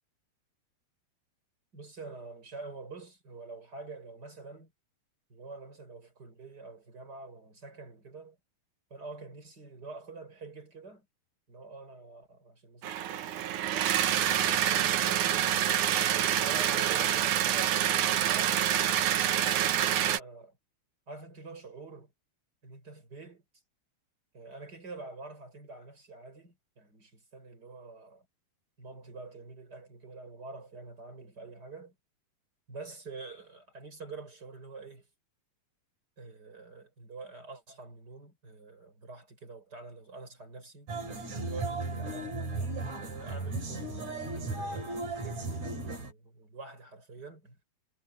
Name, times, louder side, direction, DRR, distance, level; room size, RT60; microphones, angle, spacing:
voice 1, 1.7-4.7 5.3-8.4 8.9-11.1 11.5-14.0 14.6-18.7 19.2-20.6 21.1-22.1 22.6-23.4 24.3-28.3 28.8-32.0 32.7-35.1 36.2-40.9 41.4-42.4 42.9-47.6, right 3 dB, 25° right, 5.7 m, -47 dB
sound 1, 12.8-20.2, right 11 dB, 65° right, 2.2 m, -27 dB
sound 2, 40.9-46.1, right 2 dB, 45° right, 5.9 m, -36 dB
omnidirectional pair, 4.5 m